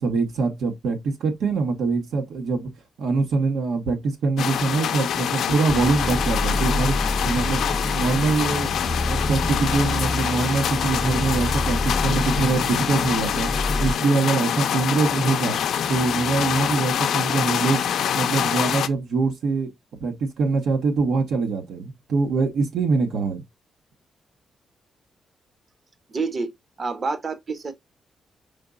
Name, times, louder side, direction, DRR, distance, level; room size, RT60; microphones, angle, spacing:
voice 1, 0.0-2.7 3.0-7.0 7.2-13.5 13.8-15.6 15.9-17.9 18.1-19.7 20.0-23.4, right 4 dB, 85° right, 0.9 m, -24 dB
sound 1, 4.4-18.9, left 9 dB, 85° left, 0.4 m, -25 dB
sound 2, 5.7-13.9, left 1 dB, 10° left, 0.5 m, -27 dB
voice 2, 26.1-26.5 26.8-27.7, right 4 dB, 40° right, 0.7 m, -28 dB
5.1 x 3.9 x 2.3 m
cardioid pair, 110°, 0 cm